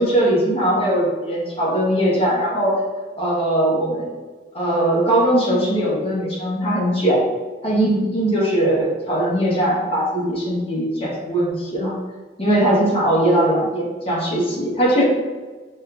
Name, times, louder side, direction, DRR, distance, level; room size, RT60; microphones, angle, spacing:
voice 1, 0.0-2.8 3.2-4.1 4.5-7.2 7.6-11.9 12.4-15.0, right 1 dB, 30° left, -5 dB, 1.0 m, -20 dB
5.0 x 2.5 x 2.3 m, 1.4 s
head